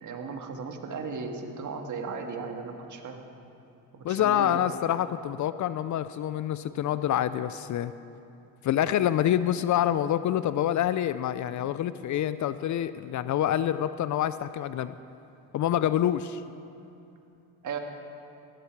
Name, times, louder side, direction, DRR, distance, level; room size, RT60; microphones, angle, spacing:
voice 1, 0.0-3.2 3.9-4.7 17.6-17.8, right 5 dB, 50° right, 4 dB, 1.8 m, -36 dB
voice 2, 4.0-7.9 8.6-14.9 15.5-16.4, left 11 dB, 50° left, 14 dB, 0.5 m, -27 dB
15.5 x 13.0 x 4.7 m, 2.7 s
supercardioid pair, 85°, 40 cm